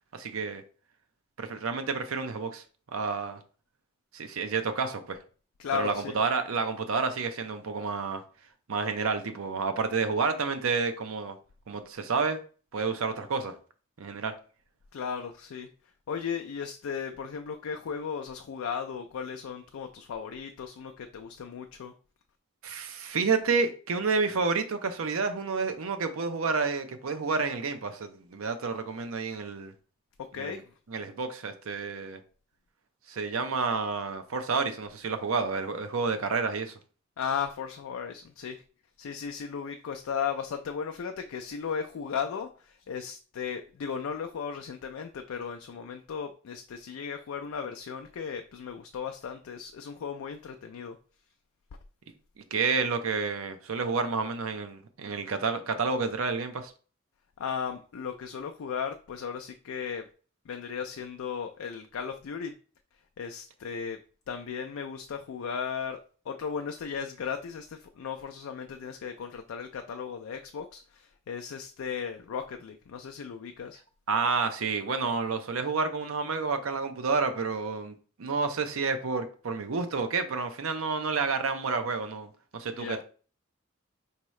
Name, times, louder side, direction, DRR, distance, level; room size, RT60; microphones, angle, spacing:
voice 1, 0.1-0.6 1.4-2.6 2.9-3.4 4.1-5.2 5.7-8.2 8.7-11.4 11.7-12.4 12.7-13.6 14.0-14.4 22.6-29.7 30.3-30.6 30.9-32.2 33.1-36.8 52.4-56.7 74.1-83.0, right 4 dB, 80° right, 0.6 m, -30 dB
voice 2, 5.6-6.2 14.9-15.7 16.1-21.9 30.2-30.7 37.2-38.6 39.0-51.0 57.4-60.1 60.5-62.5 63.2-64.0 64.3-66.0 66.3-73.8 82.7-83.0, left 6 dB, 80° left, 0.4 m, -36 dB
4.6 x 2.8 x 3.1 m
head